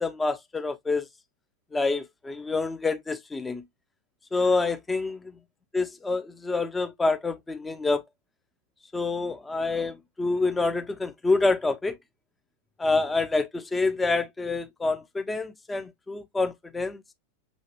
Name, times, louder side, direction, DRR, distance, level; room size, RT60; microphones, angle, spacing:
voice 1, 0.0-1.1 1.7-3.6 4.3-5.2 5.7-8.0 8.9-11.9 12.8-17.0, left 3 dB, 10° left, 0.8 m, -27 dB
6.5 x 2.8 x 2.9 m
figure-of-eight pair, 90°, 0 cm